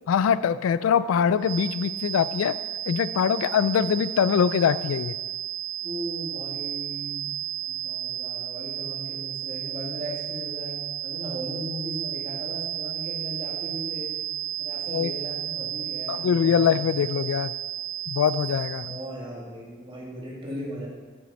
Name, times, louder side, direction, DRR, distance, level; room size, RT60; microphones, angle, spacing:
voice 1, 0.1-2.5 2.9-5.1 14.9-15.1 16.1-17.5 18.1-19.0, left 7 dB, 80° left, 16 dB, 0.3 m, -23 dB
sound 1, 1.4-19.2, right 11 dB, 70° right, 0.6 m, -33 dB
voice 2, 5.8-7.3 7.7-14.2 14.6-17.1 18.8-20.9, equal, 25° right, -4 dB, 2.2 m, -37 dB
8.2 x 7.7 x 4.2 m, 1.4 s
head